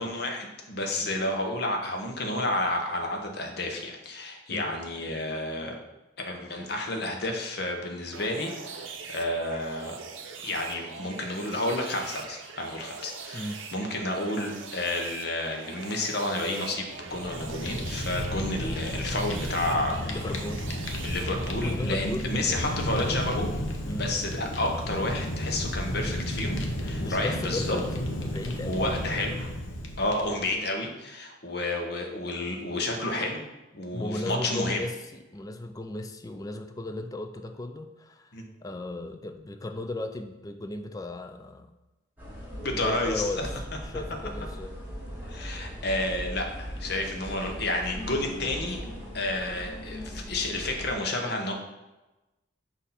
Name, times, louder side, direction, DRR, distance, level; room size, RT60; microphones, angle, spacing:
voice 1, 0.0-5.8 6.3-10.0 10.4-20.2 21.0-23.5 23.9-27.8 28.7-29.5 30.0-33.4 33.7-34.8 38.3-38.4 42.6-43.5 45.3-48.8 49.1-51.5, left 1 dB, 55° left, 2 dB, 0.9 m, -30 dB
voice 2, 1.0-1.4 4.5-4.7 13.3-13.6 20.1-20.7 21.6-23.2 23.9-24.1 26.8-28.8 33.9-38.4 38.6-41.7 42.7-44.8, left 2 dB, 20° left, 7 dB, 0.3 m, -36 dB
sound 1, 8.1-21.7, right 5 dB, 85° right, 0.6 m, -42 dB
Fire, 17.0-30.5, equal, 85° left, 0.8 m, -33 dB
sound 2, 42.2-50.9, equal, 10° right, 1.2 m, -39 dB
6.2 x 2.7 x 5.6 m, 1.0 s
head